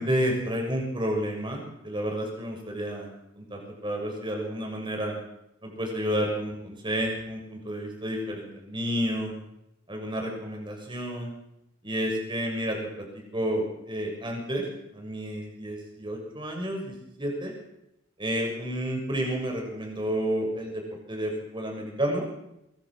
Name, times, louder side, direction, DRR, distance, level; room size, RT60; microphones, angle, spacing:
voice 1, 0.0-3.1 3.4-5.2 5.6-9.3 9.9-11.3 11.8-14.7 14.9-17.5 18.2-22.3, equal, 25° right, 1 dB, 6.9 m, -30 dB
24.5 x 23.0 x 6.5 m, 0.86 s
head